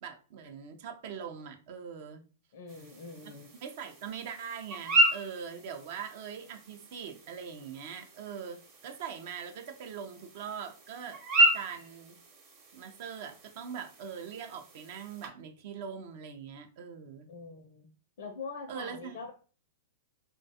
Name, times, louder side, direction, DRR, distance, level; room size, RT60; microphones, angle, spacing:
voice 1, 0.0-2.2 3.6-12.2 12.7-17.3 18.7-19.2, right 7 dB, 55° right, 6 dB, 0.4 m, -42 dB
voice 2, 2.5-3.5 17.3-17.9 18.2-19.3, left 4 dB, 60° left, 3 dB, 0.4 m, -43 dB
sound 1, 2.7-15.3, right 1 dB, 40° right, 0.8 m, -33 dB
2.4 x 2.2 x 2.7 m, 0.37 s
hypercardioid pair, 110°, 0 cm